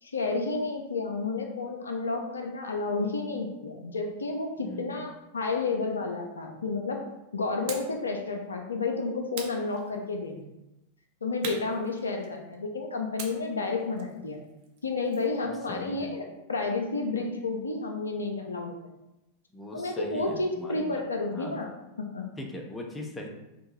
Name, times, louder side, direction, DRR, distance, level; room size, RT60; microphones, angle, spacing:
voice 1, 0.0-7.0 7.3-10.5 11.2-14.4 14.8-18.7 19.7-21.7 22.0-22.3, left 3 dB, 75° left, 2 dB, 0.3 m, -31 dB
voice 2, 4.6-5.1 15.4-16.2 19.5-21.0 21.3-21.6 22.4-23.3, left 1 dB, 10° left, 1 dB, 0.4 m, -40 dB
sound 1, 7.7-8.0 9.3-10.3 11.4-12.5 13.2-15.4, right 5 dB, 50° right, 0.4 m, -42 dB
2.6 x 2.2 x 2.9 m, 0.94 s
figure-of-eight pair, 90°, 0 cm